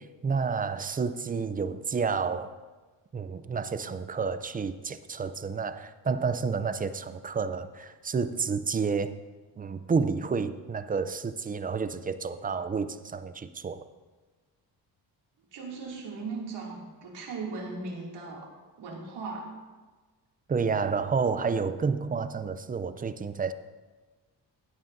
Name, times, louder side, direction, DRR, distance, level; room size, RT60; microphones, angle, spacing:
voice 1, 0.0-2.6 3.1-9.1 9.6-13.8 20.5-23.5, right 5 dB, 20° right, 12 dB, 0.4 m, -30 dB
voice 2, 15.5-19.5, right 3 dB, 80° right, -2 dB, 2.5 m, -38 dB
15.5 x 9.4 x 2.6 m, 1.3 s
cardioid pair, 120°, 41 cm